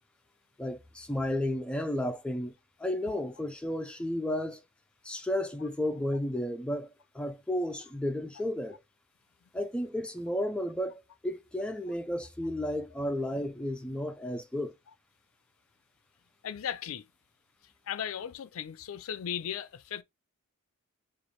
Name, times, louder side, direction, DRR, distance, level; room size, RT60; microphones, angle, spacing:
voice 1, 0.6-2.5 2.8-4.6 5.0-6.9 7.1-8.8 9.5-14.7, left 1 dB, 5° left, 0.4 m, -33 dB
voice 2, 16.4-17.0 17.9-20.0, left 9 dB, 70° left, 0.4 m, -36 dB
3.0 x 2.5 x 4.1 m
head